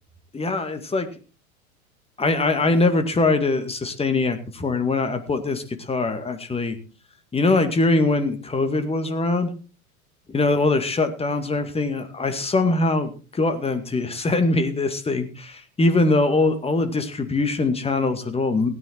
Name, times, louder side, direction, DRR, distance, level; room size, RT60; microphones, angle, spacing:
voice 1, 0.3-1.1 2.2-6.8 7.3-9.5 10.3-18.7, left 3 dB, 15° left, 8 dB, 2.0 m, -22 dB
17.0 x 9.4 x 4.3 m, 0.35 s
figure-of-eight pair, 85°, 43 cm